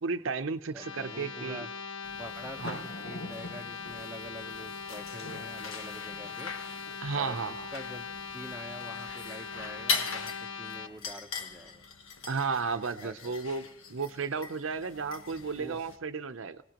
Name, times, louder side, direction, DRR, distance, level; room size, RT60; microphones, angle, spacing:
voice 1, 0.0-1.7 2.6-2.8 7.0-7.7 12.3-16.6, right 4 dB, 70° right, 9 dB, 0.7 m, -33 dB
sound 1, 0.7-10.9, left 6 dB, 65° left, 1.2 m, -41 dB
voice 2, 0.7-1.7 2.1-6.5 7.2-8.1 8.3-11.8 13.0-13.4 15.6-15.8, right 1 dB, 10° right, 3 dB, 0.8 m, -46 dB
sound 2, 2.0-16.0, left 4 dB, 85° left, 1.3 m, -41 dB
26.5 x 18.5 x 3.0 m, 0.62 s
head